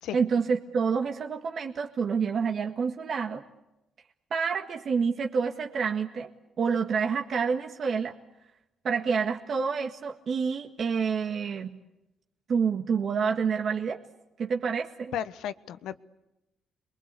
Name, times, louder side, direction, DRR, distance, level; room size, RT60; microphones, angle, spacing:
voice 1, 0.1-3.4 4.3-6.3 6.6-8.1 8.8-11.8 12.5-14.0 14.4-15.1, right 6 dB, 55° right, 3 dB, 1.7 m, -28 dB
voice 2, 15.1-16.0, left 10 dB, 85° left, 13 dB, 1.2 m, -34 dB
28.5 x 22.5 x 8.4 m, 0.94 s
cardioid pair, 90°, 0 cm